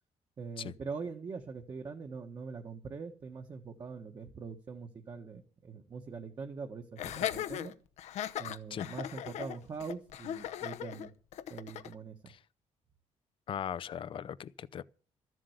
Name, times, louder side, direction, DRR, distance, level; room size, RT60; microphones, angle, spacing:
voice 1, 0.4-7.7 8.4-11.1 11.5-12.3, right 5 dB, 35° right, 1.4 m, -43 dB
Laughter, 7.0-11.9, left 11 dB, 70° left, 0.9 m, -38 dB
voice 2, 13.5-14.8, left 9 dB, 45° left, 0.6 m, -39 dB
13.5 x 7.6 x 8.0 m
cardioid pair, 130°, 12 cm